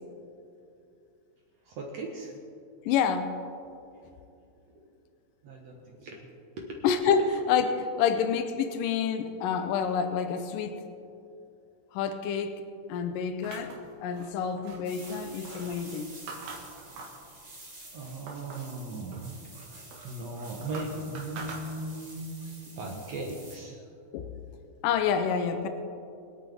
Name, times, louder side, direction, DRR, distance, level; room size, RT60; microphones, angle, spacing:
voice 1, 1.7-2.3 5.4-6.3 6.6-6.8 17.9-19.3 19.7-22.4 22.8-23.8, right 2 dB, 60° right, 0 dB, 2.1 m, -38 dB
voice 2, 2.9-3.3 6.8-10.8 11.9-12.6 12.9-16.1 24.1-24.3 24.8-25.7, left 7 dB, 85° left, 7 dB, 2.3 m, -28 dB
sound 1, 13.4-17.3 17.7-18.8 19.1-22.1, right 3 dB, 90° right, 3.5 m, -45 dB
sound 2, 14.8-23.6, right 2 dB, 30° right, 0.7 m, -49 dB
26.0 x 9.0 x 3.6 m, 2.6 s
omnidirectional pair, 4.0 m